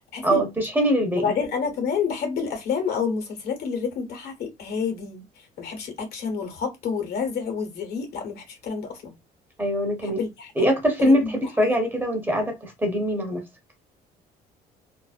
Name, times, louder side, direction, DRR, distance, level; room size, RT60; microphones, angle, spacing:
voice 1, 0.2-1.2 9.6-10.2 10.6-13.4, equal, 10° right, 0.8 m, -22 dB
voice 2, 1.2-9.1 10.0-10.5 11.0-11.7, left 6 dB, 70° left, 1.1 m, -29 dB
2.5 x 2.0 x 2.4 m
cardioid pair, 110°, 17 cm